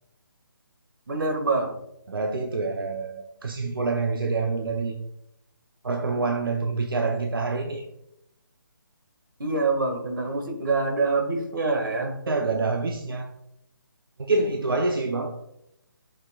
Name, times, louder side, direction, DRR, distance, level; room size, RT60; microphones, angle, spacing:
voice 1, 1.1-1.7 9.4-12.2, right 3 dB, 70° right, 4 dB, 1.8 m, -25 dB
voice 2, 2.1-5.0 5.8-7.9 12.3-13.3 14.2-15.3, right 3 dB, 90° right, 4 dB, 0.8 m, -26 dB
10.5 x 6.6 x 2.4 m, 0.82 s
hypercardioid pair, 175°, 11 cm